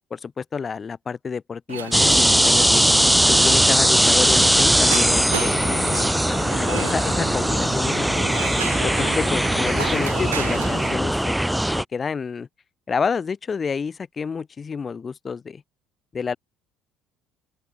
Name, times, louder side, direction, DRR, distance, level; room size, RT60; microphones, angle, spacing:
voice 1, 0.0-2.9 3.3-8.3 8.8-11.3 11.8-12.5 12.9-15.6 16.1-16.4, left 5 dB, 35° left, 3.5 m, -29 dB
sound 1, 1.7-11.0, right 10 dB, 85° right, 7.2 m, -35 dB
sound 2, 1.9-11.8, equal, 5° right, 3.6 m, -19 dB
open air
hypercardioid pair, 60°, 0 cm